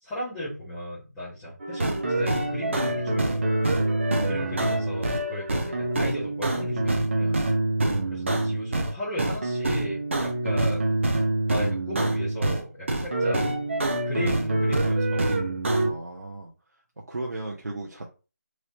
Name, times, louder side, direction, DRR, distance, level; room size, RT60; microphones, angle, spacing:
voice 1, 0.0-3.4 4.2-7.4 8.1-10.9 11.5-13.4 14.0-15.4, equal, ahead, -15 dB, 0.4 m, -35 dB
sound 1, 1.6-8.9 9.2-12.6 12.9-15.9, right 2 dB, 45° right, 0.8 m, -25 dB
voice 2, 15.8-16.5 17.1-18.1, right 2 dB, 75° right, -2 dB, 0.9 m, -36 dB
3.1 x 3.1 x 2.8 m, 0.33 s
figure-of-eight pair, 170°, 9 cm